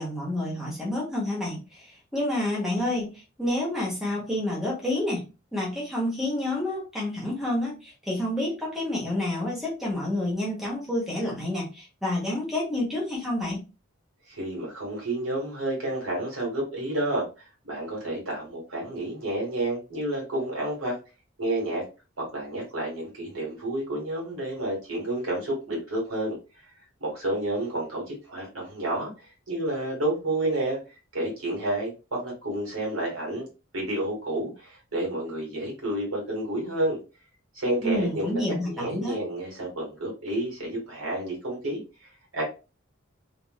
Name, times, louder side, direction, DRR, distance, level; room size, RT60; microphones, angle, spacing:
voice 1, 0.0-5.2 5.5-13.6 37.8-39.2, left 1 dB, ahead, -4 dB, 1.0 m, -29 dB
voice 2, 14.3-17.3 17.6-21.0 21.4-21.8 22.2-26.4 27.0-33.5 33.7-37.0 37.5-42.4, right 1 dB, 80° right, -2 dB, 1.7 m, -30 dB
3.0 x 2.5 x 2.3 m, 0.30 s
head